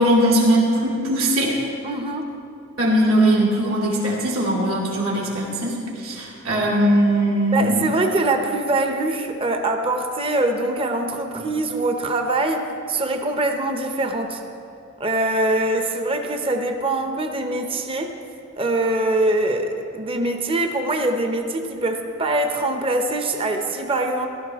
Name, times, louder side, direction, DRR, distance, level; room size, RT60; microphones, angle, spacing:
voice 1, 0.0-1.5 2.8-5.7 6.0-7.8, right 1 dB, 80° right, -4 dB, 2.8 m, -19 dB
voice 2, 1.8-2.3 7.5-14.4 15.0-18.2 18.6-24.3, right 2 dB, 25° right, 5 dB, 0.7 m, -23 dB
15.5 x 12.0 x 3.5 m, 2.6 s
head